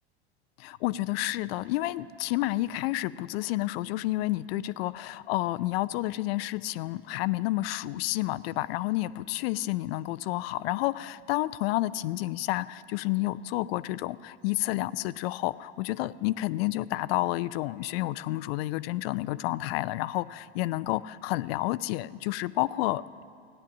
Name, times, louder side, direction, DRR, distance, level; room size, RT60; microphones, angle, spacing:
voice 1, 0.6-23.2, left 17 dB, 65° left, 17 dB, 0.5 m, -30 dB
15.5 x 9.9 x 7.2 m, 2.3 s
hypercardioid pair, 95°, 33 cm